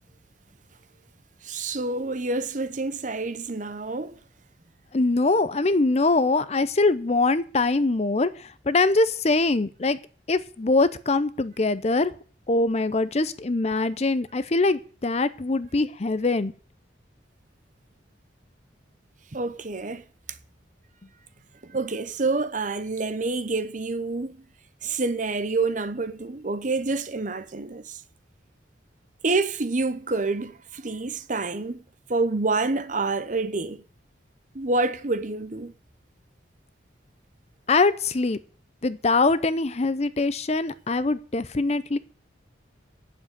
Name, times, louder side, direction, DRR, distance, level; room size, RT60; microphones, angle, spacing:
voice 1, 1.4-4.2 19.3-20.0 21.6-24.4 24.8-28.0 29.2-31.8 32.1-33.8 34.5-35.7, right 3 dB, 45° right, 0.9 m, -27 dB
voice 2, 4.9-10.0 10.3-12.1 12.5-16.5 37.7-38.4 38.8-42.0, left 3 dB, 35° left, 0.6 m, -23 dB
9.0 x 7.4 x 9.1 m
head